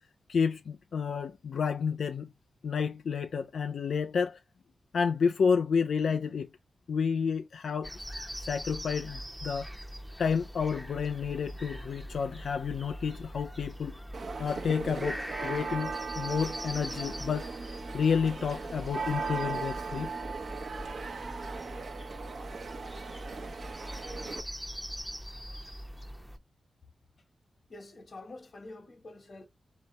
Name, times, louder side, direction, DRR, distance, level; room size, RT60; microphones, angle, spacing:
voice 1, 0.3-2.3 2.6-4.4 4.9-6.5 6.9-7.9 8.4-9.7 10.2-14.0 14.4-17.5 17.9-20.1, left 6 dB, 80° left, 0.3 m, -30 dB
sound 1, 7.8-26.4, equal, 5° right, 0.7 m, -42 dB
sound 2, 14.1-24.4, right 4 dB, 60° right, 0.8 m, -38 dB
voice 2, 27.7-29.5, left 2 dB, 45° left, 1.1 m, -47 dB
4.0 x 2.8 x 3.1 m
wide cardioid pair, 105°, 0 cm